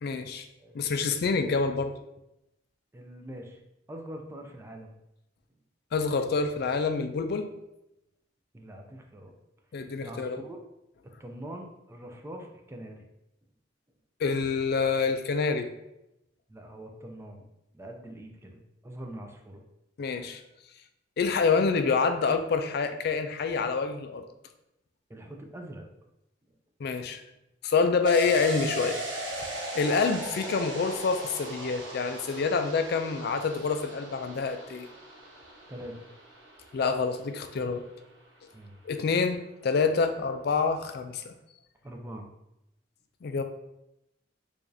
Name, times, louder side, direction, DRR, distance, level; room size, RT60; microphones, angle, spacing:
voice 1, 0.0-0.5 0.7-1.9 5.9-7.5 9.7-10.4 14.2-15.7 20.0-20.4 21.2-24.2 26.8-27.2 27.6-29.0 29.7-34.9 36.7-37.8 38.8-41.3 43.2-43.4, left 4 dB, 60° left, 8 dB, 0.4 m, -27 dB
voice 2, 2.9-3.6 3.9-5.0 8.5-9.3 10.0-10.6 11.0-13.0 16.5-17.5 17.7-19.6 25.1-25.9 35.7-36.0 38.5-38.8 41.8-42.3, right 1 dB, 15° right, 2 dB, 0.4 m, -43 dB
sound 1, 28.1-37.5 37.8-37.9, equal, 85° right, 1.0 m, -38 dB
4.7 x 2.5 x 2.6 m, 0.87 s
head